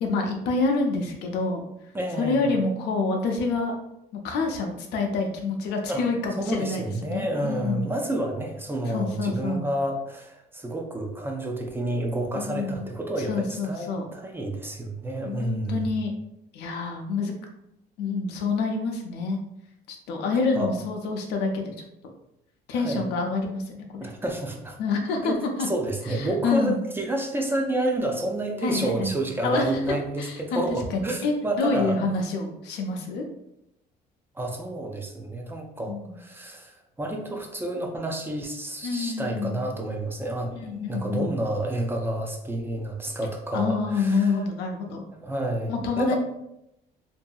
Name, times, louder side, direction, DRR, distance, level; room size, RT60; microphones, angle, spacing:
voice 1, 0.0-1.6 2.2-3.7 4.2-7.9 8.9-9.7 12.3-12.9 13.2-14.0 15.2-16.1 16.5-17.3 18.0-19.4 19.9-21.7 22.7-24.1 24.8-25.7 26.1-26.8 28.6-29.1 29.4-30.6 30.9-33.2 35.9-36.1 38.8-39.6 40.5-41.3 43.5-45.0 45.7-46.2, left 3 dB, 80° left, 3 dB, 0.6 m, -27 dB
voice 2, 1.9-2.6 5.9-6.1 6.4-15.9 20.3-20.7 22.7-23.1 24.0-24.8 25.2-32.0 34.4-44.3 45.1-46.2, right 1 dB, 15° right, 2 dB, 0.4 m, -30 dB
2.7 x 2.6 x 2.3 m, 0.82 s
cardioid pair, 110°, 17 cm